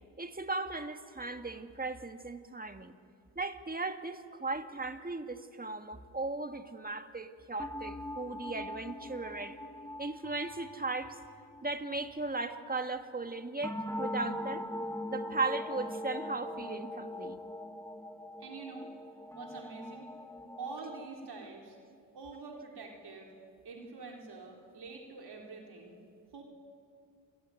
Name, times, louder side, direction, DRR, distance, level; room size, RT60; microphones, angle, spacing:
voice 1, 0.2-2.9 3.4-9.6 10.0-11.2 11.6-14.7 15.1-17.4, right 3 dB, 20° right, 8 dB, 1.9 m, -37 dB
sound 1, 7.6-13.0 13.6-21.0, left 1 dB, 5° left, 1.9 m, -42 dB
voice 2, 18.4-18.9 19.3-20.1 20.6-21.8 22.1-23.3 23.6-26.0 26.3-26.4, right 4 dB, 65° right, 1 dB, 4.5 m, -45 dB
28.0 x 22.0 x 9.4 m, 2.2 s
cardioid pair, 75°, 41 cm